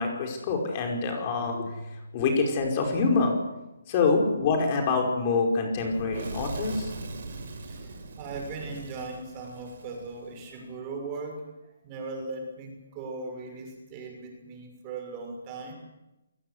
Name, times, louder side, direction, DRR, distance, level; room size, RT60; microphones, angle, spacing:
voice 1, 0.0-3.3 3.9-6.9, left 4 dB, 30° left, 2 dB, 5.2 m, -26 dB
Fire / Explosion, 5.7-10.6, right 3 dB, 55° right, 7.8 m, -40 dB
voice 2, 7.6-15.7, right 3 dB, 25° right, 3 dB, 6.6 m, -39 dB
27.5 x 19.0 x 8.2 m, 0.97 s
hypercardioid pair, 160°, 0 cm